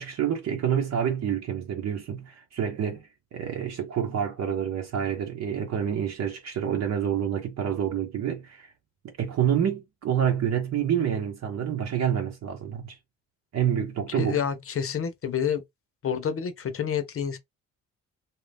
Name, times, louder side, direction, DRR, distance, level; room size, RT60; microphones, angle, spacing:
voice 1, 0.0-8.7 9.2-13.0 13.5-14.4, right 9 dB, 60° right, 0.9 m, -28 dB
voice 2, 14.1-15.6 16.0-17.4, left 8 dB, 45° left, 0.7 m, -28 dB
2.8 x 2.4 x 3.4 m
cardioid pair, 90°, 30 cm